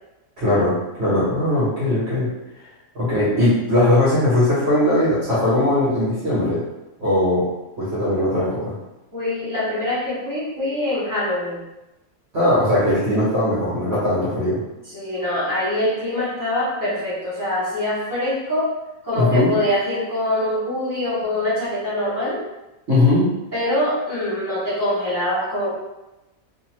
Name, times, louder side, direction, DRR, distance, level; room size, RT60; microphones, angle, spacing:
voice 1, 0.4-0.7 1.0-2.3 2.9-6.6 7.0-7.4 7.8-8.7 12.3-14.6 19.1-19.5 22.9-23.3, left 1 dB, 50° right, -9 dB, 1.2 m, -19 dB
voice 2, 9.1-11.6 14.8-18.7 19.0-22.4 23.5-25.7, left 1 dB, 15° left, -11 dB, 1.3 m, -24 dB
2.6 x 2.6 x 3.0 m, 1.0 s
omnidirectional pair, 1.6 m